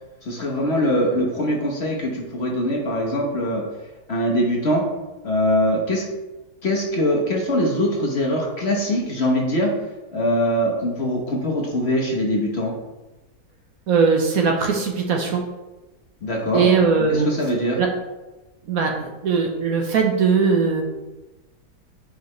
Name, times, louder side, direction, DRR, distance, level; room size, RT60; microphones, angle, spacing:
voice 1, 0.2-3.6 4.1-4.8 5.2-6.1 6.6-9.7 10.1-12.7 16.2-16.7 17.1-17.8, equal, 45° left, -1 dB, 1.1 m, -22 dB
voice 2, 13.9-15.4 16.5-17.3 17.8-17.9 18.7-20.8, right 5 dB, 60° right, 2 dB, 1.2 m, -20 dB
7.7 x 5.1 x 3.2 m, 1.1 s
omnidirectional pair, 1.8 m